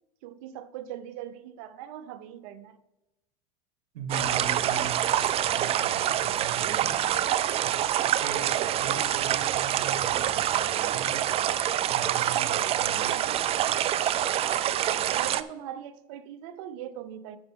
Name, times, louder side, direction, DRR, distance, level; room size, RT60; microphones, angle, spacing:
voice 1, 0.2-2.8 12.2-13.4 14.8-17.4, right 11 dB, 65° right, 0.8 m, -41 dB
voice 2, 3.9-7.2 7.6-11.3 11.9-13.8, right 5 dB, 80° right, 1.5 m, -40 dB
sound 1, 4.1-15.4, right 11 dB, 30° right, 0.4 m, -26 dB
13.0 x 5.2 x 3.7 m
supercardioid pair, 110°, 20 cm